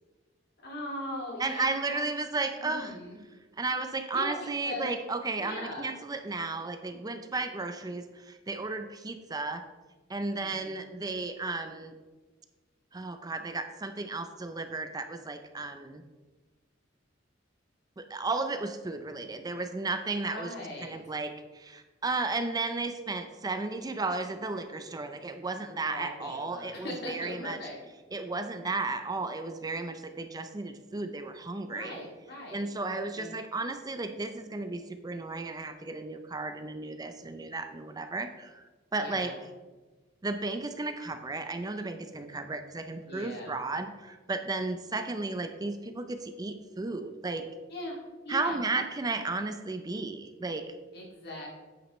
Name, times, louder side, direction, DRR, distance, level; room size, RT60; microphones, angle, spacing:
voice 1, 0.6-2.0 2.6-3.2 4.1-4.9 5.4-5.9 10.3-10.9 20.3-21.0 25.9-27.8 29.7-30.0 31.7-33.4 39.0-39.4 43.1-43.5 47.7-48.6 50.9-51.5, left 1 dB, 60° left, -3 dB, 2.3 m, -40 dB
voice 2, 1.4-3.0 3.6-9.6 10.1-11.9 12.9-16.0 18.0-20.5 20.8-27.6 28.1-32.0 32.5-38.6 38.9-39.3 40.2-47.5 48.3-50.8, right 3 dB, 20° right, 8 dB, 0.5 m, -34 dB
8.9 x 8.3 x 3.1 m, 1.3 s
head